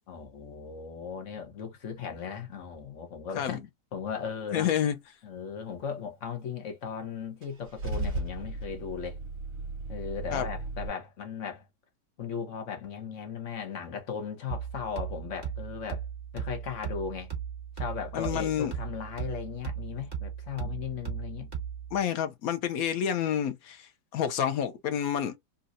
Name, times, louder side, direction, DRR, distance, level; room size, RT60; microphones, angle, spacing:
voice 1, 0.1-3.6 3.9-4.7 5.2-9.2 9.9-11.7 12.2-16.0 16.3-17.3 17.8-21.5, left 7 dB, 50° left, 1.2 m, -37 dB
voice 2, 4.5-5.0 10.3-10.5 18.1-18.7 21.9-25.4, left 9 dB, 65° left, 1.0 m, -29 dB
Car / Engine starting / Idling, 7.4-10.9, right 2 dB, 50° right, 1.4 m, -35 dB
sound 1, 14.5-22.0, right 8 dB, 25° right, 1.5 m, -37 dB
4.0 x 2.3 x 2.5 m
omnidirectional pair, 1.9 m